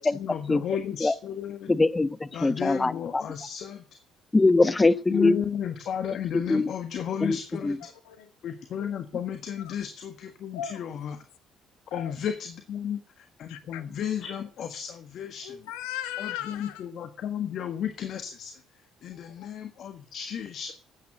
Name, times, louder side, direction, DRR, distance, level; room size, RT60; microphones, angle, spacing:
voice 1, 0.1-1.7 2.3-3.8 5.1-7.8 8.4-11.2 11.9-13.0 13.4-15.5 16.2-18.5 19.0-20.7, left 8 dB, 60° left, 1.5 m, -33 dB
voice 2, 1.7-3.2 4.3-5.4 6.3-6.7 7.2-7.8, left 3 dB, 20° left, 1.0 m, -23 dB
voice 3, 7.8-8.3 9.6-9.8 10.5-11.1 11.9-12.2 13.5-13.9 15.4-16.9 19.1-19.5, left 10 dB, 75° left, 1.5 m, -38 dB
12.0 x 8.9 x 7.8 m
hypercardioid pair, 50°, 0 cm